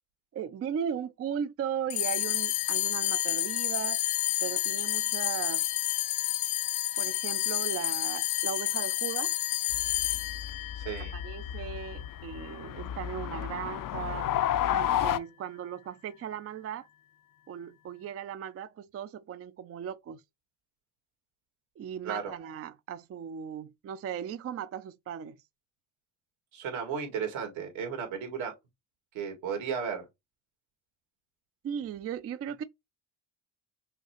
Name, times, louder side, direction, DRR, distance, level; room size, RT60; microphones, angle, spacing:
voice 1, 0.3-4.0 4.4-5.7 7.0-9.4 11.1-14.3 14.7-16.9 17.5-20.2 21.8-25.4 31.6-32.6, right 8 dB, 35° right, 0.4 m, -37 dB
sound 1, 1.9-12.5, left 14 dB, 85° left, 1.0 m, -30 dB
sound 2, 9.7-15.2, left 11 dB, 45° left, 0.5 m, -32 dB
voice 2, 10.8-11.1 22.0-22.3 26.5-28.5 29.1-30.1, right 6 dB, 75° right, 2.1 m, -34 dB
5.8 x 2.4 x 2.9 m
supercardioid pair, 70°, 47 cm